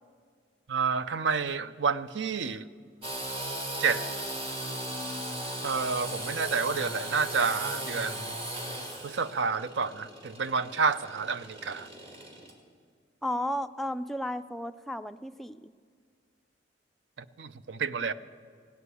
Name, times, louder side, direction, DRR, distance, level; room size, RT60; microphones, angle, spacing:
voice 1, 0.7-2.7 3.8-4.0 5.6-8.4 9.0-11.9 17.4-18.1, right 5 dB, 70° right, 14 dB, 0.5 m, -29 dB
Engine / Sawing, 3.0-12.5, right 1 dB, 30° right, 1.8 m, -37 dB
voice 2, 13.2-15.7, left 1 dB, ahead, 9 dB, 0.3 m, -33 dB
16.5 x 9.5 x 8.2 m, 2.1 s
head